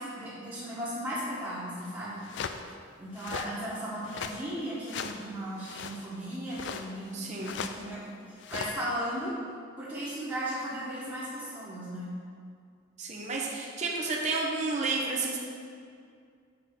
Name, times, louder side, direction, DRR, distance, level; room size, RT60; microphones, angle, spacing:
voice 1, 0.0-2.2 3.0-8.0 8.5-9.3 9.8-12.1, equal, 15° right, -13 dB, 1.3 m, -36 dB
sound 1, 1.9-2.0 2.2-2.6 3.2-3.5 4.0-4.4 4.8-5.2 5.6-6.1 6.5-7.1 7.4-7.9 8.4-9.0, left 6 dB, 60° left, 0.3 m, -38 dB
voice 2, 7.1-7.6 13.0-15.4, right 3 dB, 35° right, -2 dB, 0.8 m, -31 dB
6.8 x 3.6 x 5.9 m, 2.2 s
head